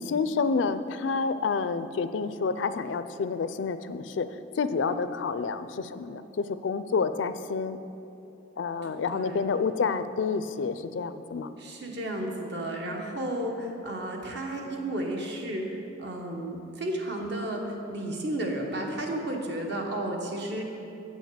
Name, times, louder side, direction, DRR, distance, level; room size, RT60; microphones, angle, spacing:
voice 1, 0.0-4.3 4.6-7.8 8.6-11.5, left 5 dB, 70° left, 12 dB, 0.4 m, -29 dB
voice 2, 8.8-9.5 11.6-20.6, right 1 dB, 60° right, 1 dB, 1.3 m, -33 dB
8.6 x 6.3 x 6.8 m, 2.8 s
head